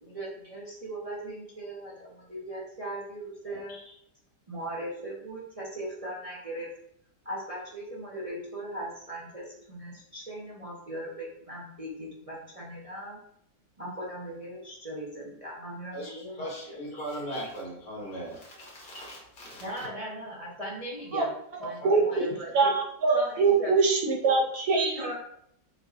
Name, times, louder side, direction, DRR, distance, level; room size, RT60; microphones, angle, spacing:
voice 1, 0.0-3.8 4.5-6.7 7.2-13.2 13.8-16.8 19.6-21.3 21.6-22.7 23.1-23.7 25.0-25.2, right 1 dB, 25° right, 0.9 m, -39 dB
voice 2, 3.5-3.8 15.9-19.9 21.6-22.2, right 1 dB, 75° left, 2.1 m, -39 dB
voice 3, 21.8-22.2 22.5-25.1, right 4 dB, 65° right, 1.1 m, -23 dB
6.8 x 3.0 x 2.5 m
omnidirectional pair, 1.9 m